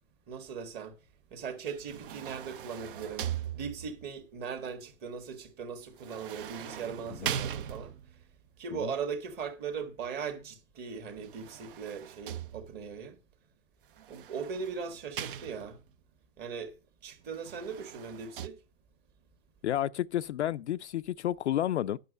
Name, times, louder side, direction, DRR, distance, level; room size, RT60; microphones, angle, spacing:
voice 1, 0.3-0.9 1.3-3.3 3.5-7.9 8.6-13.1 14.1-15.8 16.4-16.7 17.0-18.5, right 6 dB, 25° right, 1.6 m, -39 dB
sound 1, 1.7-4.1 6.0-8.2 11.1-13.0 14.0-15.9 17.3-18.5, right 10 dB, 40° right, 0.6 m, -40 dB
voice 2, 19.6-22.0, left 12 dB, 60° left, 0.5 m, -31 dB
11.0 x 6.2 x 5.1 m
hypercardioid pair, 125°, 40 cm